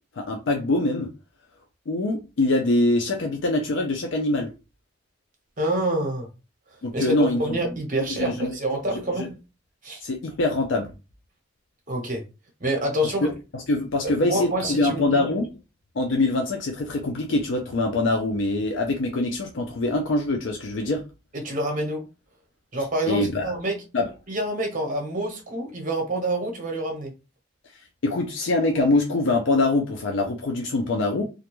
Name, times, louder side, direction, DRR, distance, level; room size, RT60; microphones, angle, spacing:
voice 1, 0.2-1.1 1.9-4.5 6.8-7.6 8.1-8.5 9.2-9.3 10.0-10.9 13.0-13.3 13.7-15.5 16.0-21.0 23.1-23.5 23.9-24.1 28.0-31.2, left 2 dB, 75° left, 0.5 m, -24 dB
voice 2, 5.6-6.3 6.9-9.3 9.8-10.0 11.9-12.2 12.6-13.3 14.0-15.2 21.3-22.0 22.7-23.8 24.3-27.1, right 1 dB, 45° right, 0.9 m, -27 dB
2.5 x 2.2 x 3.0 m
head